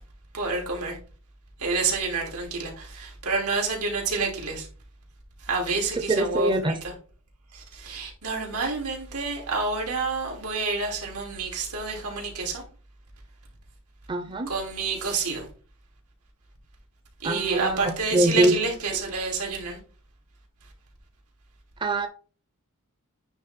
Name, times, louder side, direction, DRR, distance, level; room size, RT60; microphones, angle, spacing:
voice 1, 0.3-1.0 1.6-4.6 5.5-6.5 7.8-12.6 14.5-15.4 17.2-19.8, right 4 dB, 85° right, 2.9 m, -28 dB
voice 2, 6.1-6.8 14.1-14.5 17.2-18.6 21.8-22.1, right 1 dB, 20° right, 0.7 m, -23 dB
9.4 x 3.4 x 4.3 m
head